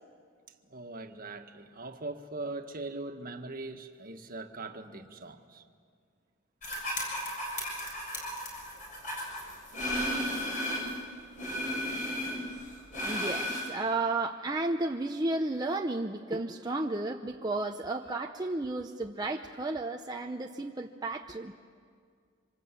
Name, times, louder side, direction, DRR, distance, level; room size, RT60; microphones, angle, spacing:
voice 1, 0.7-5.6, right 2 dB, 45° right, 5 dB, 1.7 m, -41 dB
sound 1, 6.6-11.0 11.4-13.6, equal, 40° left, 6.9 m, -34 dB
voice 2, 13.0-21.5, right 2 dB, 20° right, 2 dB, 0.7 m, -33 dB
27.0 x 26.0 x 8.4 m, 2.1 s
head